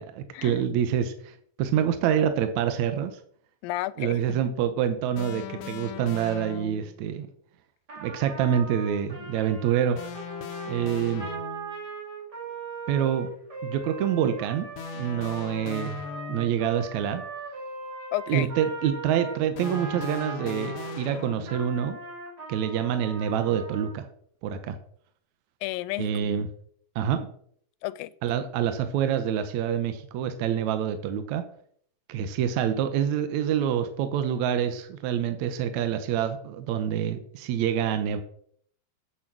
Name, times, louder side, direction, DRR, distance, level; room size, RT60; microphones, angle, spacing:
voice 1, 0.0-3.2 4.0-7.3 8.0-10.2 10.7-11.3 12.9-13.3 13.6-14.7 14.9-16.0 16.3-17.2 18.3-22.0 22.5-24.1 24.4-24.8 26.0-26.5 27.0-27.3 28.2-31.4 32.1-38.2, right 9 dB, 75° right, 1.8 m, -26 dB
voice 2, 3.6-4.4 18.1-18.5 25.6-26.1 27.8-28.1, left 17 dB, 90° left, 2.3 m, -32 dB
sound 1, 5.2-7.0 10.0-11.8 14.7-16.7 19.6-21.8, left 6 dB, 75° left, 1.9 m, -38 dB
Trumpet, 7.9-21.0 21.4-24.0, right 4 dB, 30° right, 2.7 m, -39 dB
8.7 x 7.0 x 5.9 m
omnidirectional pair, 4.0 m